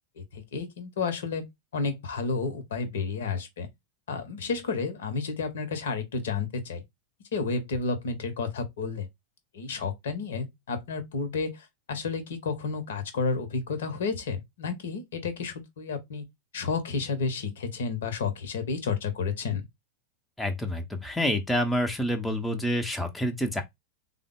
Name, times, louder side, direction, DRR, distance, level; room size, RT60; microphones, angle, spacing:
voice 1, 0.2-1.5 1.7-3.7 4.1-6.8 7.3-9.1 9.5-16.2 16.5-19.6, left 4 dB, 60° left, 0.8 m, -31 dB
voice 2, 20.4-23.6, equal, 5° left, 0.6 m, -28 dB
3.5 x 2.0 x 3.6 m
figure-of-eight pair, 90°, 0 cm